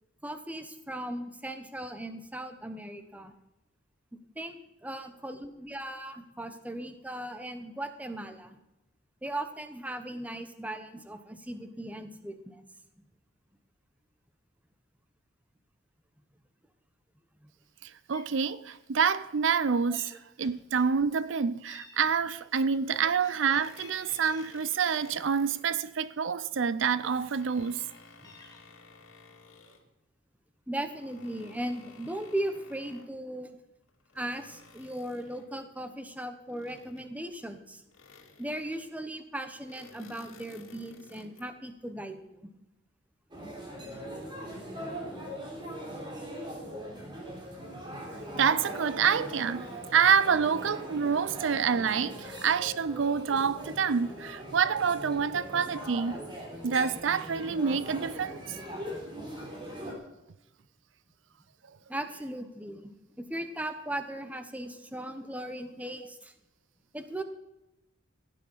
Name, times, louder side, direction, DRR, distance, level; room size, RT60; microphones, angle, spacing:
voice 1, 0.2-3.3 4.3-8.6 9.2-12.6 13.0-13.1 17.4-17.5 30.7-33.5 34.1-37.8 38.4-42.4 52.1-52.2 61.9-62.9 63.2-66.3 66.9-67.2, right 1 dB, 5° right, 0.9 m, -38 dB
Meow, 17.8-17.9 18.1-18.4 18.7-18.9 19.2-20.1 20.4-21.4 21.7-24.7 25.1-26.2 26.7-26.8 27.1-28.6, left 3 dB, 20° left, 1.9 m, -54 dB
voice 2, 17.8-27.8 48.3-56.2 56.6-58.6, right 6 dB, 65° right, 0.5 m, -27 dB
sound 1, 23.6-25.7 26.6-29.9 30.8-33.2 33.8-35.6 36.5-37.3 37.9-39.0 39.5-41.5, left 3 dB, 80° left, 2.2 m, -54 dB
sound 2, 43.3-59.9, equal, 25° right, 3.4 m, -41 dB
16.0 x 9.2 x 5.6 m
head